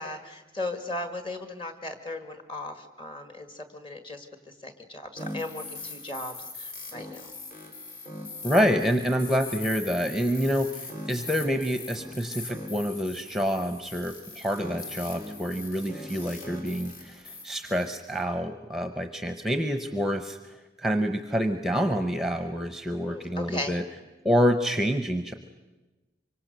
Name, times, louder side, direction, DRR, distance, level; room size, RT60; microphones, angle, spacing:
voice 1, 0.0-7.3 23.1-23.8, left 2 dB, 30° left, 8 dB, 1.9 m, -37 dB
sound 1, 5.2-18.2, left 2 dB, 50° left, 4.6 m, -40 dB
voice 2, 8.4-23.8 24.2-25.3, equal, ahead, 7 dB, 0.8 m, -27 dB
25.0 x 24.5 x 6.7 m, 1.1 s
head